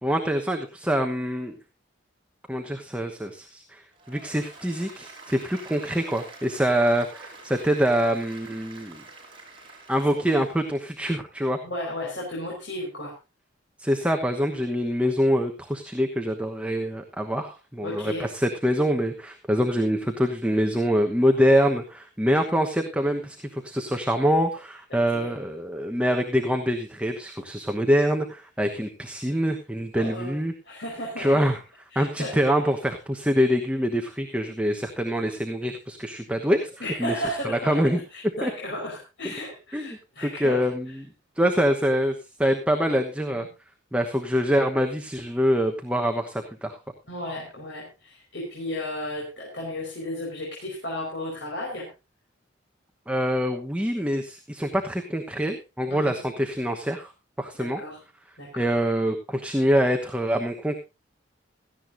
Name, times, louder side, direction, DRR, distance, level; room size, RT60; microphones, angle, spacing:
voice 1, 0.0-1.5 2.5-9.0 9.9-11.6 13.8-30.5 31.2-31.6 31.9-36.7 37.0-37.1 37.4-38.0 38.4-38.5 39.7-39.9 40.2-41.1 41.4-43.5 43.9-46.8 53.1-57.1 57.4-57.8 58.6-60.8, equal, 5° right, 4 dB, 1.1 m, -25 dB
Applause, 3.9-10.7, right 3 dB, 25° right, 5.1 m, -46 dB
voice 2, 11.6-13.1 17.8-18.3 24.9-25.3 29.9-30.3 30.6-31.5 31.9-32.4 36.8-40.7 43.3-43.5 47.1-51.9 55.9-56.2 57.6-58.0 58.4-58.6, left 1 dB, 65° left, -3 dB, 5.0 m, -34 dB
17.0 x 14.5 x 2.7 m, 0.28 s
head